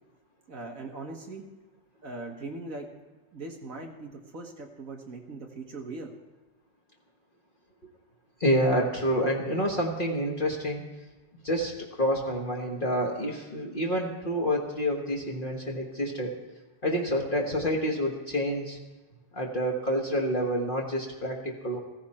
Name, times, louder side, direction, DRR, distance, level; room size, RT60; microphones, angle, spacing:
voice 1, 0.5-1.4 2.0-2.9 3.3-6.1 19.1-19.2, right 3 dB, 45° right, 1 dB, 1.1 m, -40 dB
voice 2, 8.4-10.8 11.4-11.7 12.0-16.3 16.8-18.8 19.3-21.8, equal, 70° left, -1 dB, 0.5 m, -28 dB
15.5 x 15.0 x 4.3 m, 1.2 s
omnidirectional pair, 3.3 m